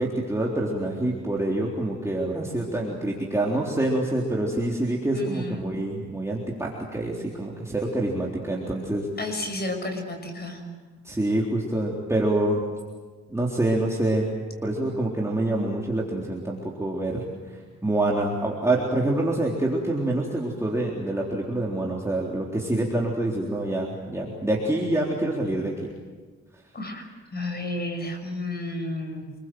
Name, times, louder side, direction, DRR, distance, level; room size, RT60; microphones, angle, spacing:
voice 1, 0.0-9.4 11.0-12.6 13.3-14.3 14.6-17.2 17.8-25.7, right 1 dB, 10° right, -3 dB, 3.7 m, -26 dB
voice 2, 5.1-5.7 9.2-10.6 26.7-27.0 27.3-29.3, left 1 dB, 35° left, 4 dB, 6.3 m, -32 dB
28.0 x 22.0 x 7.8 m, 1.4 s
cardioid pair, 100°, 29 cm